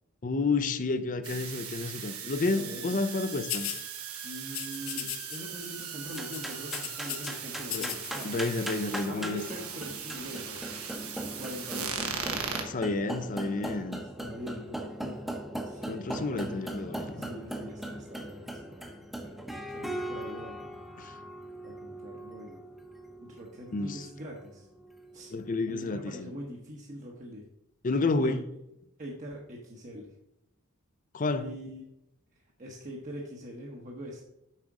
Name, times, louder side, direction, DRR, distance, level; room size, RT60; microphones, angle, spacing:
voice 1, 0.2-3.7 7.7-7.9 8.2-9.4 12.7-14.0 15.9-17.3 21.0-21.1 23.7-24.1 25.3-26.3 27.8-28.4 31.1-31.5, left 3 dB, 40° left, 0.5 m, -30 dB
sound 1, 1.2-12.6, right 7 dB, 90° right, 1.3 m, -39 dB
voice 2, 2.2-3.0 4.2-8.6 9.1-11.0 11.3-12.1 14.2-15.2 15.6-15.8 16.3-16.7 17.1-19.4 19.7-20.8 21.6-22.6 23.2-24.7 25.1-25.3 25.7-27.4 28.1-28.4 29.0-30.1 31.3-31.8 32.6-34.3, equal, 35° right, 1.0 m, -43 dB
sound 2, 3.5-3.8 4.5-5.4 5.6-5.9 6.1-7.3 7.6-8.3, left 11 dB, 70° left, 0.8 m, -36 dB
sound 3, 6.1-25.6, right 1 dB, ahead, 0.8 m, -40 dB
7.5 x 5.0 x 4.7 m
head